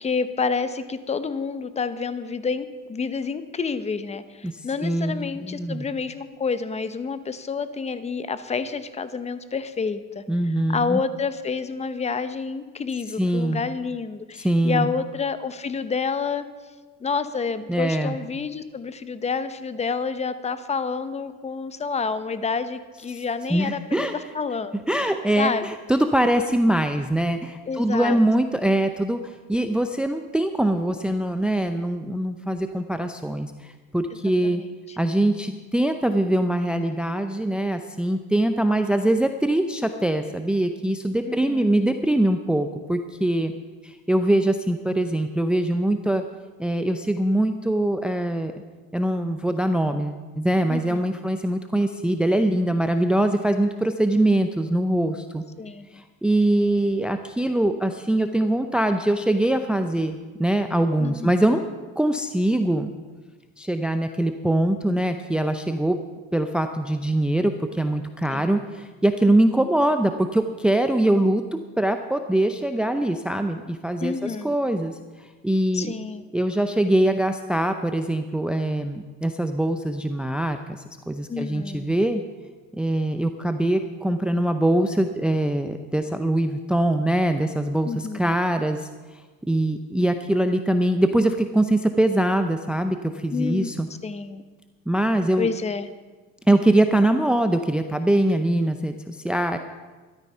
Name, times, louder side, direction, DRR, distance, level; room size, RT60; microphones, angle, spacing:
voice 1, 0.0-10.2 10.7-16.4 17.0-24.1 24.3-24.9 25.4-25.7 27.7-28.2 34.4-34.6 41.3-41.8 50.7-51.1 55.6-55.9 61.0-61.3 68.3-68.6 74.0-74.5 75.7-76.2 81.3-81.9 87.8-88.3 93.3-93.7 94.0-94.4 95.4-95.9, left 5 dB, 20° left, 12 dB, 0.8 m, -29 dB
voice 2, 4.4-5.9 10.3-11.0 13.2-13.6 14.3-14.9 17.7-18.2 23.1-23.2 23.5-24.1 24.9-34.6 35.0-43.5 43.8-46.2 46.6-48.5 48.9-55.4 55.9-61.6 62.0-62.9 63.6-66.0 66.3-71.4 71.8-75.9 76.3-82.2 82.7-89.2 89.5-93.9 94.9-95.5 96.5-99.6, right 1 dB, 5° right, 7 dB, 0.6 m, -23 dB
13.0 x 12.0 x 5.5 m, 1.3 s
cardioid pair, 115°, 30 cm